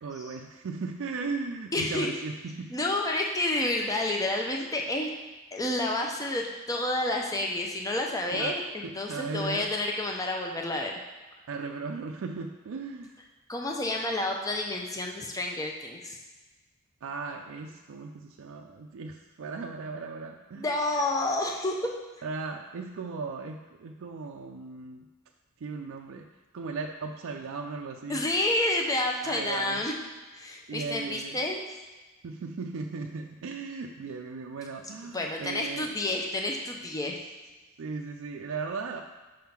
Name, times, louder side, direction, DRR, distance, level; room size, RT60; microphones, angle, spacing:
voice 1, 0.0-2.7 8.3-9.7 11.5-13.1 17.0-20.7 22.2-25.1 25.6-26.3 26.5-28.3 29.2-29.8 30.7-31.4 32.2-35.9 37.8-39.0, right 4 dB, 65° right, 2 dB, 0.4 m, -37 dB
voice 2, 1.7-2.1 2.7-5.1 5.5-10.9 13.5-16.2 20.6-21.9 28.1-29.9 30.3-31.6 35.1-37.2, left 2 dB, 15° left, 1 dB, 0.6 m, -29 dB
5.2 x 3.7 x 5.8 m, 1.2 s
head